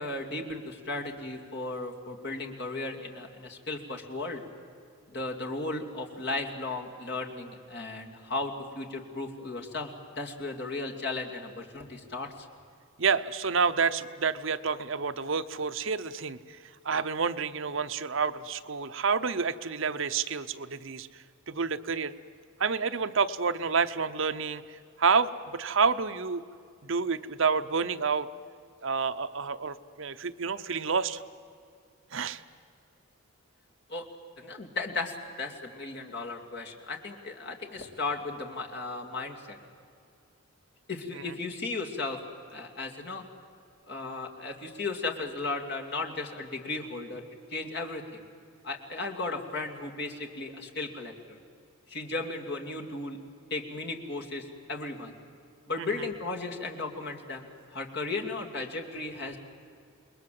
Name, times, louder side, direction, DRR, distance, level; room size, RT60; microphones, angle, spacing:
voice 1, 0.0-4.4 5.1-12.5 33.9-34.1 34.4-39.6 40.9-42.2 42.5-43.2 43.9-47.2 47.5-48.0 48.6-51.4 51.9-53.2 53.5-55.1 55.7-57.5 57.7-59.4, left 3 dB, 50° left, 1 dB, 2.7 m, -35 dB
voice 2, 13.0-16.6 16.8-22.1 22.6-26.4 26.8-28.3 28.8-31.2 32.1-32.4 41.1-41.2 55.8-56.0, right 5 dB, 60° right, 11 dB, 0.8 m, -29 dB
28.5 x 21.0 x 7.7 m, 2.3 s
head